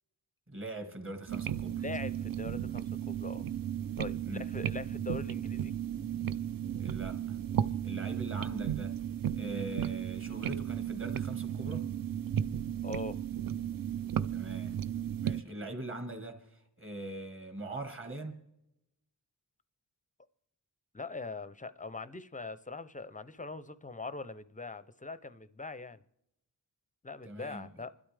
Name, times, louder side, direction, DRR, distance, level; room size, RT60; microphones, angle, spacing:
voice 1, 0.5-1.8 4.2-4.5 6.8-7.4 7.8-9.0 9.3-11.9 14.3-14.9 15.2-18.4 27.2-27.7, right 1 dB, 30° right, 1.5 m, -42 dB
sound 1, 1.3-15.4, right 10 dB, 55° right, 0.5 m, -34 dB
voice 2, 1.7-3.4 4.0-5.7 12.8-13.2 20.9-26.0 27.0-27.9, left 3 dB, 20° left, 0.5 m, -42 dB
27.5 x 12.5 x 3.3 m
wide cardioid pair, 140°, 42 cm